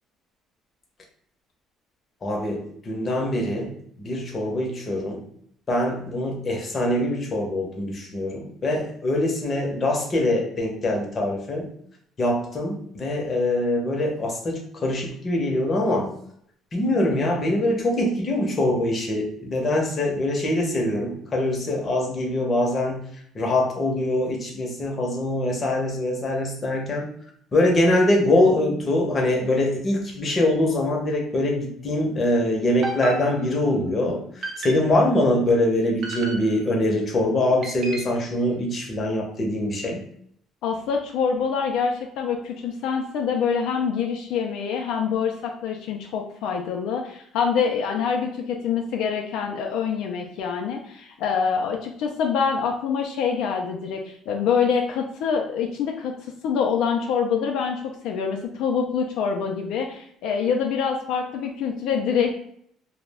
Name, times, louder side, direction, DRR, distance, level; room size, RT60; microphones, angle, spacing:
voice 1, 2.2-5.2 5.7-11.7 12.2-16.1 16.7-23.1 23.3-27.1 27.5-40.1, left 1 dB, 30° left, 0 dB, 0.7 m, -23 dB
sound 1, 32.8-33.8 34.4-35.1 36.0-36.9 37.6-38.3, right 2 dB, 45° right, 0.5 m, -35 dB
voice 2, 40.6-56.1 56.4-62.3, left 6 dB, 75° left, 2 dB, 0.3 m, -25 dB
2.3 x 2.0 x 3.3 m, 0.67 s
cardioid pair, 130°, 0 cm